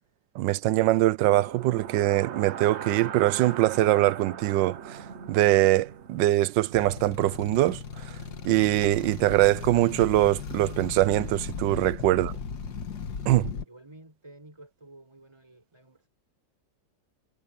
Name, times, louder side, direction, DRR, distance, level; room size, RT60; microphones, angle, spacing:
voice 1, 0.3-5.0 5.3-8.1 8.4-12.3 13.3-13.5, right 16 dB, 85° right, 1.3 m, -23 dB
sound 1, 1.2-9.2, right 7 dB, 50° right, 1.0 m, -41 dB
sound 2, 6.7-13.6, left 6 dB, 60° left, 2.2 m, -37 dB
voice 2, 12.1-12.5 13.7-16.1, right 2 dB, 15° right, 4.6 m, -52 dB
omnidirectional pair, 1.9 m